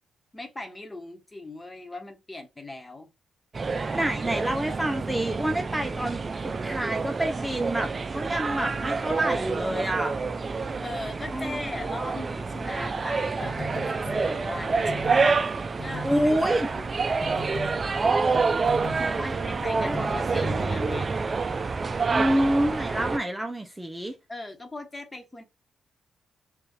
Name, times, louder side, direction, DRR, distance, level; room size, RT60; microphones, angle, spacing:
voice 1, 0.3-3.1 10.8-13.6 13.9-15.4 15.8-16.1 17.7-18.7 19.2-21.1 24.3-25.4, left 2 dB, 20° left, 1.3 m, -39 dB
sound 1, 3.5-23.2, right 4 dB, 40° right, 0.4 m, -28 dB
voice 2, 3.9-10.2 11.3-11.9 16.0-17.1 19.2-19.4 19.8-20.0 22.1-24.2, right 1 dB, 10° right, 0.7 m, -28 dB
sound 2, 13.4-17.0 17.2-21.2, left 1 dB, 45° left, 1.0 m, -39 dB
4.4 x 2.6 x 3.3 m
supercardioid pair, 65°, 0 cm